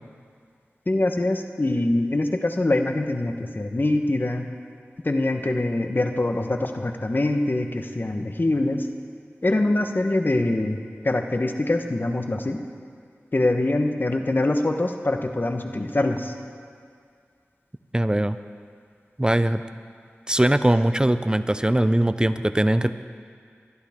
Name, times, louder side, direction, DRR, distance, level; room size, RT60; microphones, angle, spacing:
voice 1, 0.9-4.5 5.0-8.9 9.4-10.8 11.0-12.6 13.3-16.3, left 2 dB, 45° left, 5 dB, 1.2 m, -24 dB
voice 2, 17.9-18.4 19.2-19.6 20.3-22.9, right 1 dB, 20° right, 12 dB, 0.5 m, -21 dB
24.0 x 11.0 x 3.7 m, 2.2 s
cardioid pair, 40°, 5 cm